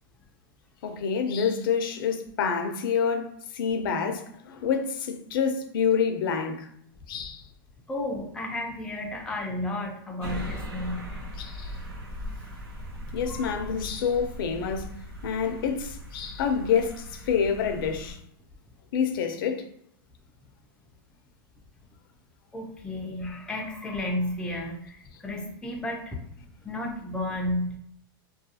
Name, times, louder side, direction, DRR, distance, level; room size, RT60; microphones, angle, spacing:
voice 1, 0.8-6.7 7.1-7.4 11.4-11.8 13.1-14.9 15.2-18.2 18.9-19.7, left 6 dB, 70° left, 0.5 m, -27 dB
voice 2, 7.9-11.1 13.3-13.4 22.5-26.2 26.6-27.7, left 1 dB, 5° left, 0.4 m, -32 dB
sound 1, 10.2-18.1, equal, 85° right, 0.8 m, -39 dB
2.3 x 2.3 x 2.7 m
supercardioid pair, 140°, 12 cm